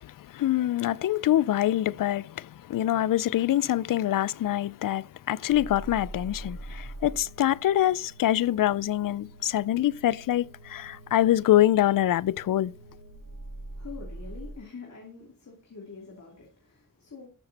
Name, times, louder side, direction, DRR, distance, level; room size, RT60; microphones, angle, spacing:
voice 1, 0.0-12.7, left 13 dB, 85° left, 0.5 m, -25 dB
sound 1, 5.5-14.5, right 1 dB, 65° right, 3.8 m, -44 dB
voice 2, 13.7-17.3, left 5 dB, 60° left, 3.2 m, -45 dB
14.0 x 6.7 x 4.2 m
cardioid pair, 55°, 32 cm